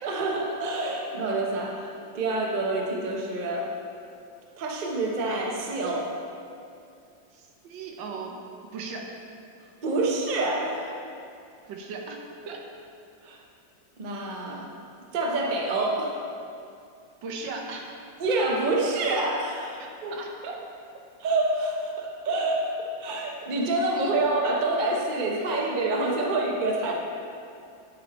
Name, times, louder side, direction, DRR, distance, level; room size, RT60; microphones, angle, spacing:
voice 1, 0.0-3.7 4.6-6.1 9.8-11.0 13.2-13.4 14.0-14.7 15.1-16.2 18.2-20.1 21.2-26.9, right 2 dB, 45° right, -1 dB, 0.6 m, -27 dB
voice 2, 7.3-8.4 8.7-9.1 11.6-12.6 17.2-18.0 19.8-20.6 23.9-24.2 26.9-27.0, right 4 dB, 85° right, 1 dB, 1.5 m, -38 dB
9.3 x 4.3 x 4.1 m, 2.5 s
omnidirectional pair, 2.0 m